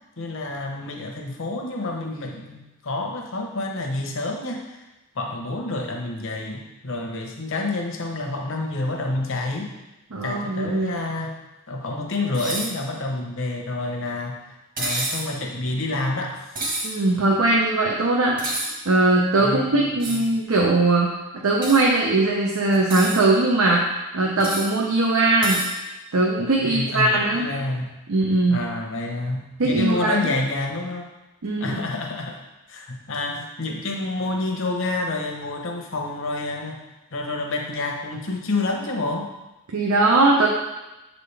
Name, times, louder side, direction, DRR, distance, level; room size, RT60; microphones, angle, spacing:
voice 1, 0.2-4.8 5.1-9.7 10.2-11.3 11.7-16.7 19.4-20.2 26.6-27.9 28.5-31.1 31.6-32.4 32.7-36.8 37.1-39.3, left 2 dB, 60° left, 1 dB, 0.9 m, -28 dB
voice 2, 10.1-10.9 16.8-18.4 18.9-21.1 21.4-23.9 24.1-25.6 26.1-27.5 28.1-28.6 29.6-30.3 31.4-31.8 39.7-40.5, right 2 dB, 70° right, -2 dB, 0.7 m, -20 dB
sound 1, 12.3-12.7 14.8-15.3 16.5-16.9 18.4-18.7 20.0-20.3 21.6-21.8 22.7-23.2 24.4-24.7 25.4-25.7, right 2 dB, 40° right, 1.4 m, -28 dB
7.5 x 4.2 x 3.3 m, 1.0 s
head